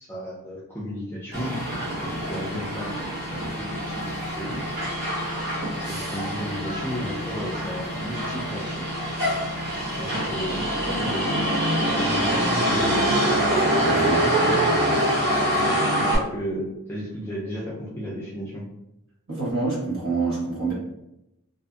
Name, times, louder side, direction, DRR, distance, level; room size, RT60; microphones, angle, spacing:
voice 1, 0.1-1.5 2.0-2.9 3.5-4.6 5.8-8.8 10.0-13.0 15.5-18.6, equal, 10° left, -7 dB, 0.4 m, -34 dB
Motor vehicle (road), 1.3-16.2, equal, 40° right, 0.9 m, -25 dB
voice 2, 13.8-14.3 19.3-20.7, right 3 dB, 65° right, -5 dB, 1.2 m, -27 dB
2.6 x 2.5 x 2.3 m, 0.88 s
head